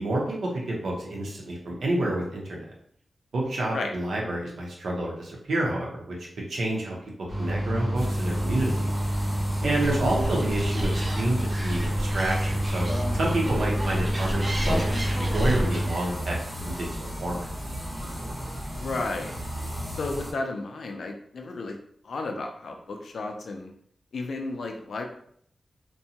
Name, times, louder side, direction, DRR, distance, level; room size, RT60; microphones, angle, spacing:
voice 1, 0.0-2.6 3.3-6.1 6.5-7.0 7.4-8.9 9.6-12.9 13.1-17.5, right 1 dB, 80° right, -2 dB, 0.7 m, -29 dB
sound 1, 7.3-15.9, right 1 dB, 45° right, 0.9 m, -28 dB
sound 2, 8.0-20.3, equal, ahead, 0.8 m, -34 dB
Animal, 9.8-15.6, equal, 25° right, 0.4 m, -33 dB
voice 2, 18.7-19.3 19.9-21.8 22.0-23.7 24.1-25.0, left 3 dB, 75° left, 3 dB, 0.4 m, -33 dB
2.7 x 2.2 x 2.8 m, 0.65 s
wide cardioid pair, 160°, 0 cm